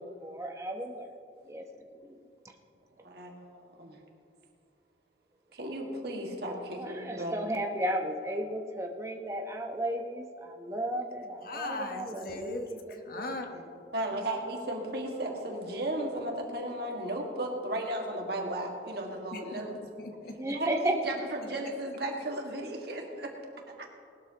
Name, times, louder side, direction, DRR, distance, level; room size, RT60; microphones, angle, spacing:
voice 1, 0.2-1.1 1.5-1.7 2.0-2.2 6.8-13.3 20.4-21.0, right 1 dB, 15° right, 2 dB, 0.9 m, -34 dB
voice 2, 3.0-4.0 5.5-7.5 13.9-19.8 20.5-23.3, right 1 dB, 60° right, 1 dB, 1.8 m, -35 dB
voice 3, 11.4-13.8 19.3-20.5, left 2 dB, 55° left, 4 dB, 1.2 m, -39 dB
19.5 x 12.5 x 2.9 m, 2.4 s
head